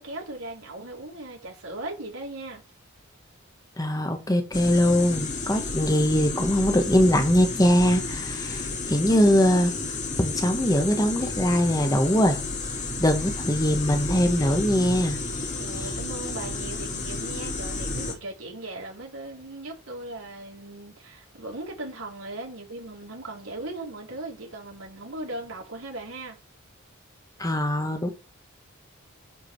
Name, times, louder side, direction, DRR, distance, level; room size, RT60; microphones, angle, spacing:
voice 1, 0.0-2.6 15.6-26.4, right 2 dB, 90° right, 4.2 m, -38 dB
voice 2, 3.8-8.6 8.9-9.7 10.2-12.4 13.0-15.2 27.4-28.1, equal, 20° left, 1.5 m, -22 dB
sound 1, 4.5-18.1, left 3 dB, 35° left, 3.0 m, -31 dB
11.0 x 5.1 x 4.8 m
head